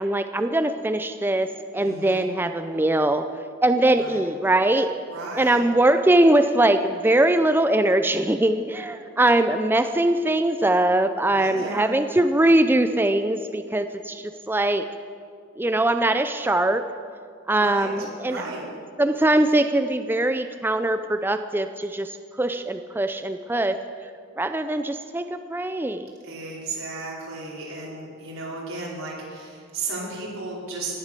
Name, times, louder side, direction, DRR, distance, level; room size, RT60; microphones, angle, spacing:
voice 1, 0.0-3.3 3.6-4.9 5.3-14.9 15.6-16.9 17.5-18.4 19.0-23.8 24.4-26.1, right 1 dB, 10° right, 8 dB, 0.4 m, -22 dB
voice 2, 1.7-2.3 3.9-4.2 5.1-5.6 11.4-11.9 17.6-18.6 26.2-31.0, right 3 dB, 85° right, -5 dB, 5.0 m, -34 dB
18.5 x 11.5 x 6.8 m, 2.2 s
head